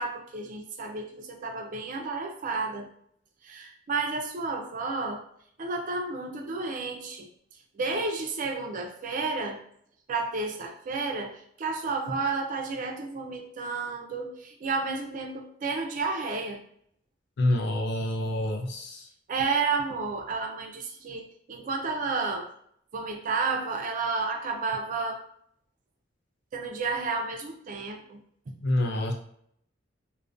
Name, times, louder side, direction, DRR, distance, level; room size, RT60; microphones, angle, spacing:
voice 1, 0.0-2.9 3.4-5.2 5.6-7.3 7.7-9.6 10.1-16.6 19.3-22.5 22.9-25.2 26.5-28.2 28.5-28.6, right 4 dB, 45° right, 3 dB, 0.4 m, -31 dB
voice 2, 17.4-19.1 28.6-29.1, left 1 dB, 60° left, 3 dB, 0.4 m, -27 dB
2.4 x 2.1 x 2.4 m, 0.66 s
head